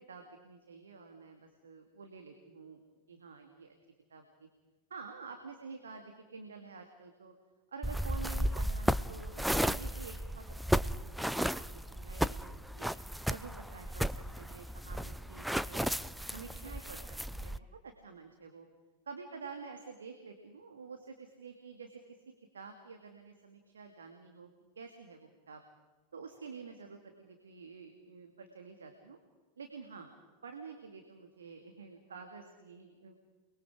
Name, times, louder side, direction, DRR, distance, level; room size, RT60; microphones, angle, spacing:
voice 1, 0.1-2.8 3.1-3.7 4.1-4.2 4.9-7.3 7.7-12.4 12.8-12.9 13.3-14.1 14.4-15.9 16.3-17.0 17.3-18.7 19.1-22.0 22.5-24.5 24.8-25.6 26.1-29.2 29.6-33.1, right 5 dB, 70° right, 5 dB, 2.2 m, -49 dB
sound 1, 7.8-17.6, equal, ahead, 0.6 m, -34 dB
29.0 x 22.0 x 4.9 m, 1.3 s
figure-of-eight pair, 90°, 0 cm